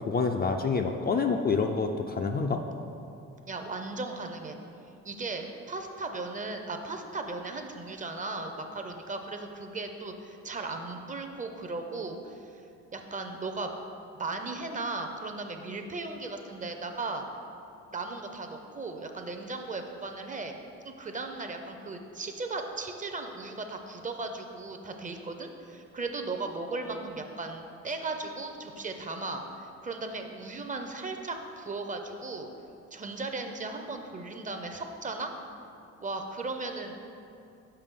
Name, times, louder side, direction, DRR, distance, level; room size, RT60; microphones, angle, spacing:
voice 1, 0.1-2.6, left 4 dB, 35° left, 4 dB, 0.4 m, -27 dB
voice 2, 3.5-4.6 5.0-12.5 12.9-13.7 14.2-17.2 17.9-20.6 20.8-32.5 32.9-35.3 36.0-37.0, right 3 dB, 25° right, 5 dB, 0.6 m, -36 dB
6.8 x 5.4 x 3.7 m, 2.7 s
cardioid pair, 90°, 30 cm